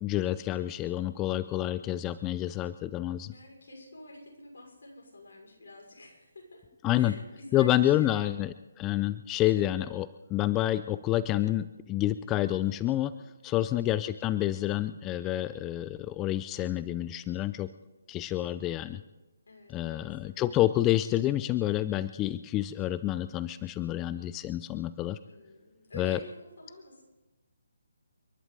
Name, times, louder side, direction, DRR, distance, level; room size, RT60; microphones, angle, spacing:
voice 1, 0.0-3.3 6.8-7.1 7.5-13.1 13.4-17.7 18.1-19.0 19.7-25.2 26.0-26.2, left 14 dB, 15° left, 14 dB, 0.4 m, -28 dB
voice 2, 3.3-6.7 6.9-8.3 13.5-13.8 19.5-20.3 25.2-27.0, left 2 dB, 65° left, 0 dB, 5.6 m, -49 dB
30.0 x 11.0 x 3.9 m, 1.1 s
figure-of-eight pair, 150°, 0 cm